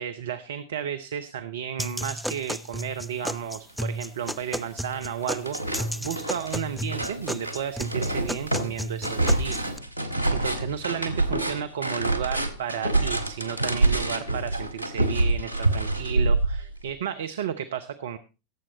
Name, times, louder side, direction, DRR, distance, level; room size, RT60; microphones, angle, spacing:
voice 1, 0.0-9.7 10.3-18.2, right 9 dB, 65° right, 11 dB, 0.7 m, -33 dB
sound 1, 1.8-9.8, equal, ahead, 0.5 m, -33 dB
sound 2, 3.8-3.9 4.2-5.0 5.2-16.9, right 2 dB, 90° left, 1.4 m, -26 dB
17.0 x 7.6 x 4.1 m, 0.31 s
figure-of-eight pair, 85°, 0 cm